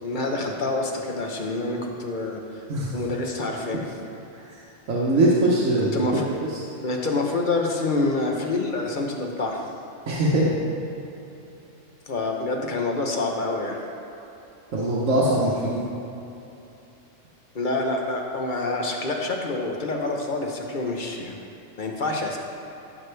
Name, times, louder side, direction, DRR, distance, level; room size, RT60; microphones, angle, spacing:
voice 1, 0.0-2.6 2.9-3.8 5.9-6.3 6.8-9.6 12.1-13.8 17.5-21.4 21.8-22.4, left 2 dB, 40° left, 1 dB, 1.0 m, -27 dB
voice 2, 4.9-5.9 6.5-6.6 10.1-10.5 14.7-15.8, right 1 dB, 85° right, -6 dB, 1.5 m, -21 dB
14.0 x 6.5 x 3.4 m, 2.9 s
omnidirectional pair, 1.3 m